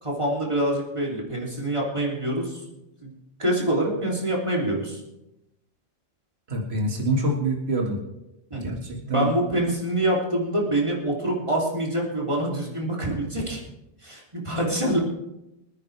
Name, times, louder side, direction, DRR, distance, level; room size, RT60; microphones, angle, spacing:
voice 1, 0.0-2.6 3.0-3.1 3.4-5.0 8.5-8.8 9.0-13.6 14.0-15.0, right 1 dB, 25° right, -3 dB, 3.3 m, -25 dB
voice 2, 6.5-8.0 8.6-9.3, right 1 dB, 55° right, 0 dB, 2.4 m, -26 dB
25.5 x 9.4 x 3.4 m, 0.91 s
omnidirectional pair, 1.3 m